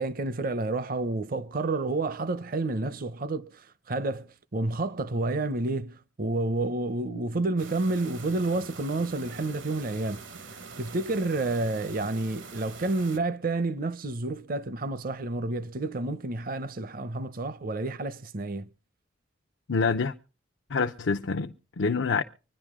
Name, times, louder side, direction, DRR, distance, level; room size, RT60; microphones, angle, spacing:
voice 1, 0.0-10.2 10.5-18.7, right 2 dB, 50° right, 0.6 m, -30 dB
sound 1, 7.6-13.2, right 4 dB, 80° right, 1.3 m, -44 dB
voice 2, 19.7-20.1 20.7-22.2, left 4 dB, 85° left, 0.7 m, -26 dB
25.5 x 10.5 x 3.6 m
head